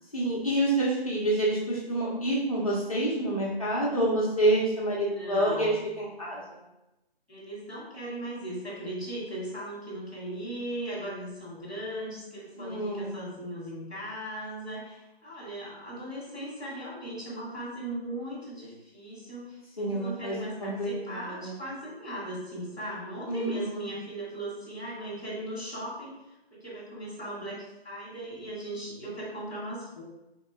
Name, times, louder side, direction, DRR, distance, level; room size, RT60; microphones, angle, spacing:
voice 1, 0.1-6.6 12.6-13.1 19.8-21.6 23.3-23.8, right 1 dB, 35° left, -6 dB, 0.8 m, -28 dB
voice 2, 5.1-5.9 7.3-30.0, right 1 dB, 5° right, -17 dB, 1.1 m, -38 dB
3.6 x 2.9 x 4.2 m, 0.95 s
figure-of-eight pair, 175°, 31 cm